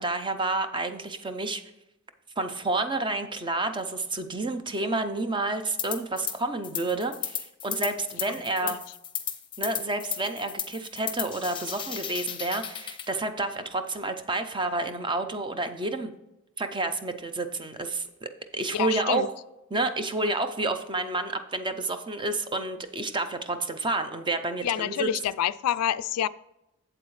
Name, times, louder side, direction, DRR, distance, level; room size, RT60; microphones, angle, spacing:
voice 1, 0.0-1.6 2.4-8.8 9.6-16.1 16.6-19.3 19.7-25.1, right 2 dB, 20° right, 0.6 m, -30 dB
sound 1, 5.8-6.4 6.6-13.1, left 9 dB, 25° left, 0.7 m, -34 dB
voice 2, 18.7-19.3 24.6-26.3, left 10 dB, 90° left, 0.3 m, -27 dB
8.0 x 7.8 x 3.2 m
head